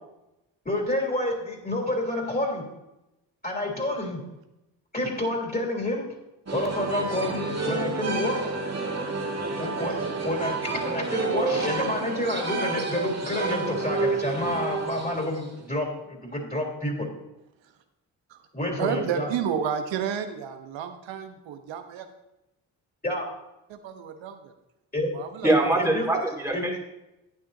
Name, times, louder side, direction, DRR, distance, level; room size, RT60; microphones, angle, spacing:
voice 1, 0.6-2.6 3.4-4.2 4.9-6.1 6.5-8.4 9.6-17.1 18.5-19.3 23.0-23.3 24.9-25.1 25.4-26.1 26.5-26.8, left 1 dB, 20° left, 3.5 m, -29 dB
sound 1, 6.5-15.6, right 3 dB, 35° right, 2.0 m, -30 dB
voice 2, 6.9-7.4 8.0-8.6 17.6-17.7 18.3-18.4 18.8-22.1 23.7-24.5 25.1-25.7, right 8 dB, 75° right, 1.1 m, -32 dB
voice 3, 25.4-26.8, right 2 dB, 5° right, 2.4 m, -23 dB
12.0 x 9.1 x 2.7 m
hypercardioid pair, 40°, 46 cm